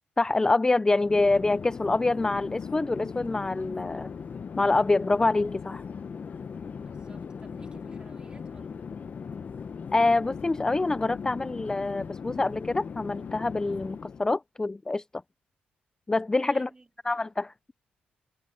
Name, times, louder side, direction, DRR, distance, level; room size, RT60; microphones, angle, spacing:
voice 1, 0.2-4.1 4.6-5.8 9.9-15.0 16.1-16.7 17.1-17.5, left 2 dB, 20° left, 0.4 m, -25 dB
Chatter / Fixed-wing aircraft airplane, 0.9-14.3, left 6 dB, 50° left, 0.9 m, -39 dB
voice 2, 6.8-8.9 16.4-16.9, right 3 dB, 25° right, 4.2 m, -55 dB
cardioid pair, 75°, 4 cm